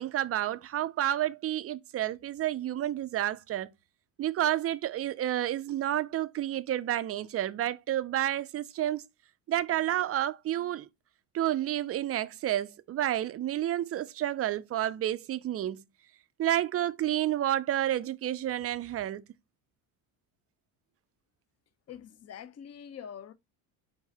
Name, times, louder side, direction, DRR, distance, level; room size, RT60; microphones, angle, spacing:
voice 1, 0.0-3.7 4.2-9.0 9.5-10.9 11.3-15.8 16.4-19.2, right 12 dB, 30° right, 0.4 m, -30 dB
voice 2, 21.9-23.3, left 8 dB, 35° left, 0.6 m, -44 dB
4.6 x 2.6 x 4.1 m
supercardioid pair, 85°, 47 cm